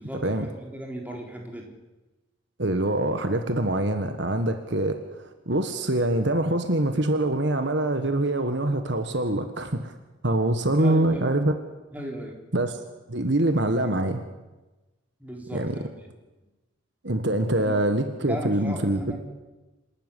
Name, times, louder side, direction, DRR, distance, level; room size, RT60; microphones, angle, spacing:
voice 1, 0.0-1.7 10.8-11.4 11.9-12.4 15.2-15.9 17.6-17.8 18.2-19.2, right 1 dB, 10° right, 0 dB, 3.9 m, -36 dB
voice 2, 2.6-9.9 10.2-11.5 12.5-12.8 13.1-14.2 15.5-15.8 17.0-19.2, right 1 dB, 55° right, 7 dB, 1.6 m, -24 dB
27.0 x 13.0 x 10.0 m, 1.1 s
head